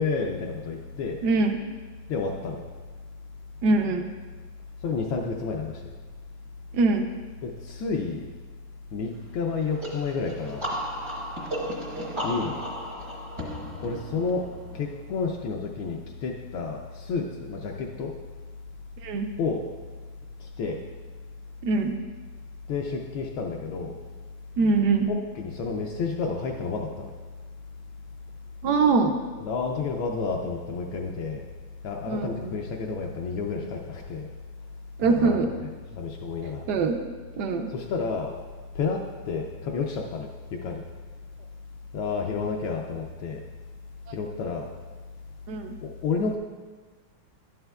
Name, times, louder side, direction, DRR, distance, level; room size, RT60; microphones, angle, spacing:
voice 1, 0.0-1.2 2.1-2.6 4.8-5.9 7.4-8.3 8.9-10.7 12.2-12.6 13.8-14.5 14.7-18.1 19.4-19.6 20.4-20.8 22.7-24.0 25.1-27.1 29.4-31.4 31.8-34.3 35.0-35.4 35.9-36.6 37.7-38.3 38.7-40.8 41.9-43.4 44.1-44.7 45.8-46.4, left 4 dB, 80° left, 0 dB, 1.4 m, -30 dB
voice 2, 1.2-1.6 3.6-4.0 6.7-7.1 19.0-19.3 21.6-21.9 24.6-25.1 28.6-29.1 32.1-32.5 35.0-35.5 36.7-37.0 37.4-37.7 45.5-45.8, right 4 dB, 70° right, 5 dB, 1.0 m, -23 dB
sound 1, 9.8-15.4, equal, 25° right, 0.6 m, -35 dB
11.0 x 7.8 x 2.3 m, 1.4 s
omnidirectional pair, 2.2 m